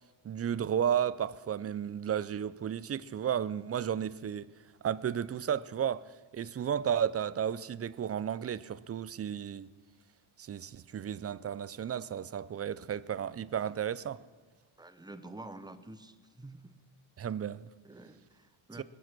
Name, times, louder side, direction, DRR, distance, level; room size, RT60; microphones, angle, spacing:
voice 1, 0.2-4.5 4.8-6.0 6.3-9.7 10.4-14.2 17.2-17.7 18.8-18.9, right 9 dB, 35° right, 0.4 m, -33 dB
voice 2, 14.8-16.7 17.8-18.8, right 2 dB, 10° right, 0.8 m, -48 dB
21.0 x 7.7 x 6.1 m
cardioid pair, 110°, 48 cm